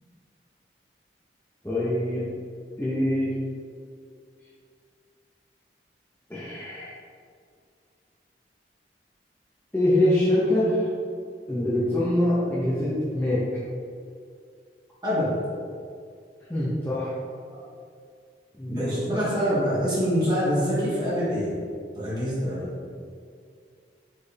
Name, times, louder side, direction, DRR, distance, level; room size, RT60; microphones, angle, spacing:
voice 1, 1.6-2.3 2.8-3.3 6.3-6.9 9.7-10.9 11.5-13.4 16.5-17.1 18.6-19.0, left 1 dB, 10° left, -10 dB, 0.6 m, -24 dB
voice 2, 15.0-15.4 18.7-21.5 21.9-22.7, equal, 25° right, -9 dB, 1.3 m, -25 dB
4.4 x 3.1 x 3.3 m, 2.3 s
head